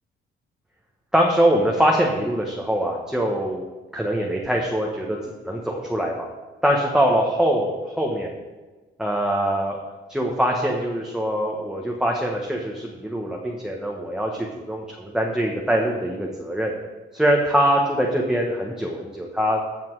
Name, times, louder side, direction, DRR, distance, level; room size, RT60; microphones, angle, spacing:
voice 1, 1.1-3.6 3.9-5.2 5.4-6.3 6.6-8.3 9.0-9.8 10.1-16.7 17.1-19.6, equal, 5° right, -1 dB, 1.5 m, -23 dB
15.5 x 5.9 x 4.8 m, 1.2 s
cardioid pair, 90°, 20 cm